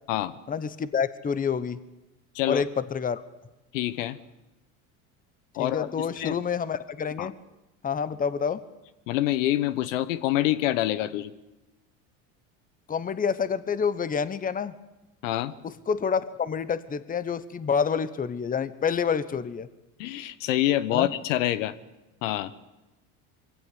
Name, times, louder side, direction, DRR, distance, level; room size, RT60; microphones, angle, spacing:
voice 1, 0.5-1.8 2.5-3.2 5.6-7.3 7.8-8.6 12.9-14.7 15.6-19.7 20.9-21.1, left 6 dB, 20° left, 14 dB, 1.0 m, -28 dB
voice 2, 2.3-2.7 3.7-4.2 5.6-6.4 7.2-7.3 9.1-11.3 15.2-15.5 20.0-21.7 22.2-22.5, left 14 dB, 80° left, 14 dB, 1.1 m, -26 dB
23.0 x 16.5 x 8.3 m, 1.0 s
supercardioid pair, 100°, 38 cm